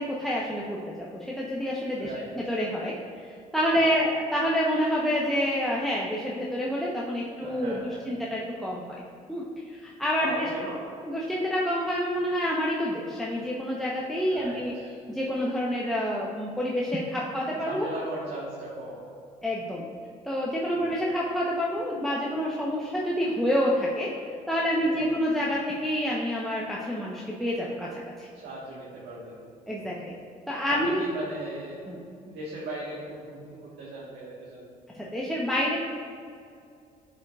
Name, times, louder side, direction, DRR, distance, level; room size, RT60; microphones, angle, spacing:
voice 1, 0.0-2.1 2.4-2.9 3.5-8.8 9.3-9.4 9.7-10.3 11.0-14.7 15.1-17.9 19.4-19.8 20.2-24.1 24.5-28.3 29.7-30.1 30.5-31.0 31.9-32.0 35.0-35.8, equal, ahead, -5 dB, 1.0 m, -28 dB
voice 2, 2.0-2.3 3.9-4.1 7.4-8.0 10.2-10.8 14.3-15.0 17.5-19.0 20.7-21.0 24.8-25.1 28.3-29.5 29.8-30.0 30.7-31.8 32.2-34.7, right 2 dB, 65° right, -6 dB, 1.5 m, -38 dB
10.0 x 5.3 x 2.4 m, 2.4 s
hypercardioid pair, 55°, 20 cm